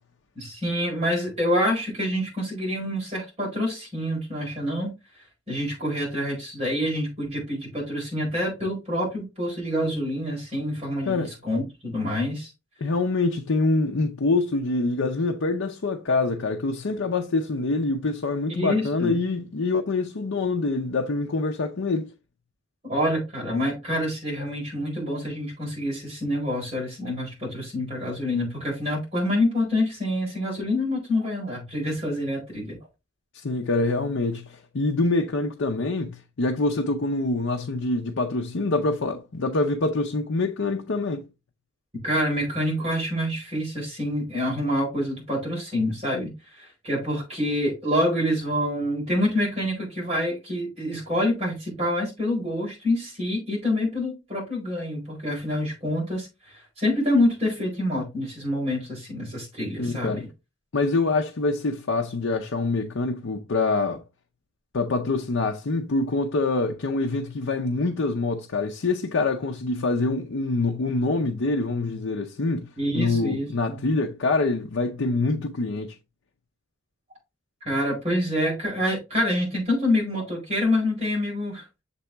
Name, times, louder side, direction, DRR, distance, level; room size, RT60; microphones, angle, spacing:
voice 1, 0.3-4.9 5.5-12.5 18.5-19.2 22.8-32.8 42.0-60.3 72.8-73.8 77.6-81.6, left 1 dB, 30° right, 4.3 m, -27 dB
voice 2, 12.8-22.1 33.3-41.3 59.8-60.2 60.7-64.0 64.7-76.0, left 3 dB, 80° left, 0.6 m, -25 dB
6.8 x 4.1 x 3.4 m
head